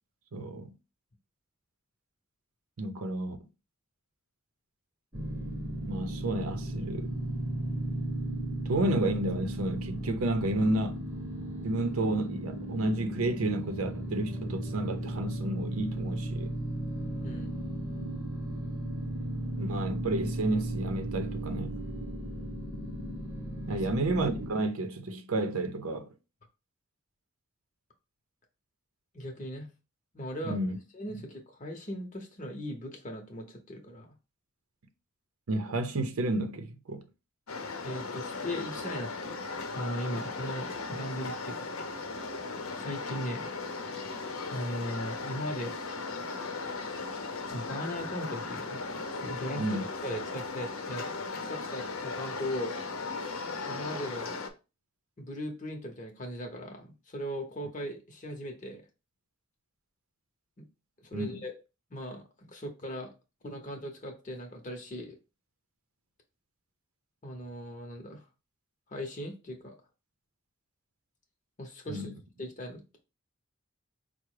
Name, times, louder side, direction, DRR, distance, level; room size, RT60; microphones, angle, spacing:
voice 1, 0.3-0.7 2.8-3.4 5.9-7.1 8.7-11.0 11.6-16.5 19.6-21.8 23.7-26.1 30.4-30.8 35.5-37.0 49.5-49.8 61.1-61.3 71.9-72.1, right 2 dB, 90° right, 0.6 m, -31 dB
sound 1, 5.1-24.5, right 1 dB, 15° right, 0.8 m, -35 dB
voice 2, 17.2-17.6 23.7-24.1 29.1-29.7 30.1-30.6 30.9-34.1 37.8-39.4 39.7-41.7 42.7-43.5 44.5-45.8 47.5-48.8 49.2-51.1 51.5-52.8 53.6-54.4 55.2-58.8 60.6-60.7 61.0-61.6 61.9-63.1 63.4-65.2 67.2-68.2 68.9-69.8 71.6-72.1 72.4-73.0, equal, 35° left, 0.7 m, -38 dB
sound 2, 37.5-54.5, left 3 dB, 85° left, 0.7 m, -37 dB
4.7 x 2.1 x 4.7 m
head